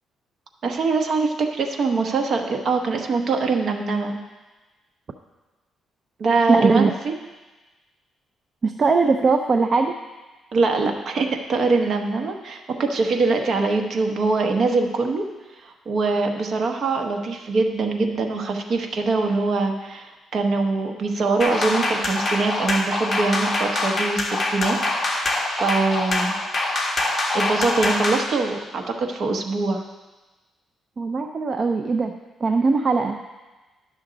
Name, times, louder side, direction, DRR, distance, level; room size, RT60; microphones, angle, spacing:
voice 1, 0.6-4.2 6.2-7.1 10.5-15.2 15.6-24.8 25.1-26.3 27.3-29.8, right 3 dB, 50° right, 4 dB, 1.0 m, -23 dB
voice 2, 6.5-6.9 8.6-9.9 31.0-32.1 32.4-33.2, right 4 dB, 35° right, 5 dB, 0.4 m, -20 dB
sound 1, 21.4-28.3, left 2 dB, 20° left, 1.3 m, -24 dB
11.0 x 6.2 x 3.9 m, 1.2 s
cardioid pair, 130°, 0 cm